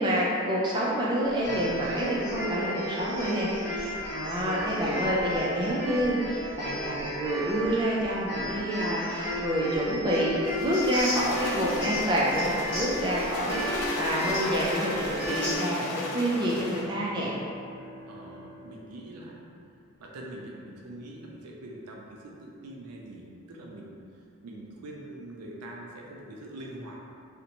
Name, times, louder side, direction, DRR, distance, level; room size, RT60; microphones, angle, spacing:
voice 1, 0.0-10.3 10.6-17.3, equal, 20° right, -6 dB, 0.3 m, -28 dB
sound 1, 1.3-15.6, left 1 dB, 50° left, 1.0 m, -33 dB
sound 2, 10.4-16.9, left 2 dB, 80° left, 0.3 m, -37 dB
sound 3, 15.8-19.8, equal, 45° right, 0.7 m, -48 dB
voice 2, 18.1-19.5 20.0-23.9 24.4-27.0, right 1 dB, 90° right, -2 dB, 0.4 m, -43 dB
2.5 x 2.1 x 2.8 m, 2.4 s
head